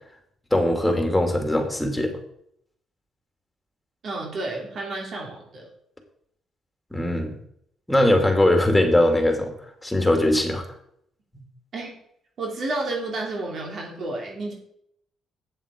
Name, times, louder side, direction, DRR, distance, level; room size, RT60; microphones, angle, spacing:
voice 1, 0.5-2.2 6.9-7.4 7.9-9.5 9.8-10.6, left 1 dB, 5° left, 4 dB, 2.2 m, -20 dB
voice 2, 4.0-5.7 11.7-11.9 12.4-14.5, right 2 dB, 60° right, -1 dB, 2.7 m, -31 dB
7.9 x 7.3 x 5.0 m, 0.71 s
cardioid pair, 90°, 0 cm